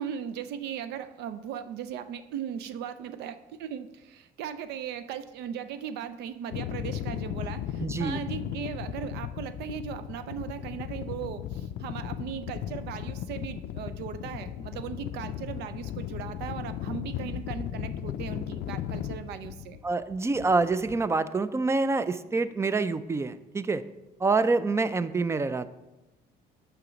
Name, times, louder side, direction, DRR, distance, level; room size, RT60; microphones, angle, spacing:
voice 1, 0.0-19.8, right 8 dB, 80° right, 11 dB, 0.5 m, -38 dB
sound 1, 6.5-21.1, left 10 dB, 70° left, 0.4 m, -36 dB
voice 2, 7.8-8.2 19.8-23.8 24.2-25.7, right 3 dB, 15° right, 14 dB, 0.4 m, -26 dB
6.8 x 5.9 x 5.1 m, 1.0 s
cardioid pair, 110°, 17 cm